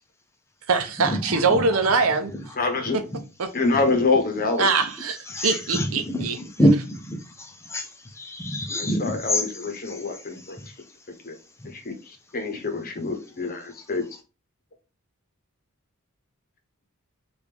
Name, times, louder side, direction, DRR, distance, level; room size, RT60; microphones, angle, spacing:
voice 1, 0.7-2.3 3.4-3.5 4.6-6.4, right 4 dB, 70° right, 0.7 m, -23 dB
voice 2, 2.6-3.0 3.5-4.7 8.8-10.6 11.2-11.4 11.6-14.0, left 3 dB, 40° left, 0.9 m, -26 dB
voice 3, 5.3-7.9 8.2-9.4 9.9-10.0, equal, 10° left, 0.6 m, -25 dB
5.0 x 2.6 x 3.4 m
head